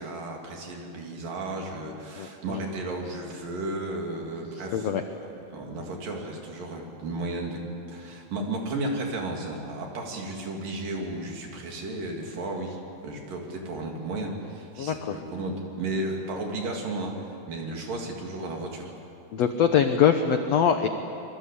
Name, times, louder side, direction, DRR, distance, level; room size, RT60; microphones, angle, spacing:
voice 1, 0.0-5.2 5.5-7.6 7.9-18.9, right 2 dB, 65° right, 1 dB, 4.6 m, -34 dB
voice 2, 2.2-2.6 4.7-5.0 14.8-15.2 19.3-20.9, left 8 dB, 75° left, 7 dB, 1.5 m, -23 dB
25.5 x 23.0 x 8.6 m, 2.9 s
omnidirectional pair, 4.3 m